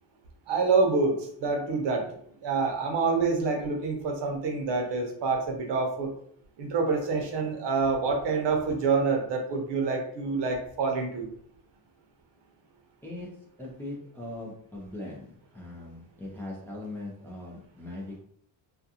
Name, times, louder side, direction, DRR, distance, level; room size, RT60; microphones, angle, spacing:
voice 1, 0.5-1.1 1.4-2.1 2.4-6.1 6.6-11.3, right 4 dB, 60° right, 2 dB, 0.8 m, -27 dB
voice 2, 13.0-18.2, left 2 dB, 5° left, -3 dB, 0.4 m, -40 dB
2.4 x 2.3 x 2.7 m, 0.64 s
cardioid pair, 130°, 47 cm